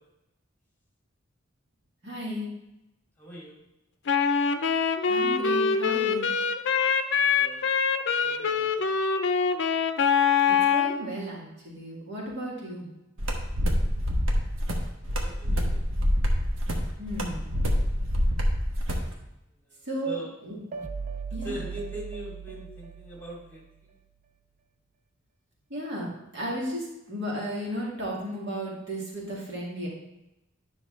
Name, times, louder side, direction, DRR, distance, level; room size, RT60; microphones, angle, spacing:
voice 1, 2.0-2.5 5.1-6.3 10.5-12.9 17.0-17.5 19.9-20.2 20.5-20.6 21.3-21.6 25.7-29.9, right 1 dB, 60° right, -4 dB, 2.1 m, -34 dB
voice 2, 3.2-3.6 7.2-7.7 8.2-9.0 13.7-14.1 15.2-15.8 19.5-20.3 21.3-23.9, right 1 dB, 10° left, -4 dB, 2.8 m, -42 dB
Wind instrument woodwind instrument, 4.1-11.0, left 6 dB, 60° left, 0.5 m, -24 dB
sound 1, 13.2-19.1, equal, 90° right, 1.2 m, -26 dB
sound 2, 20.7-23.9, right 5 dB, 40° right, 0.4 m, -38 dB
10.0 x 5.8 x 3.2 m, 0.93 s
head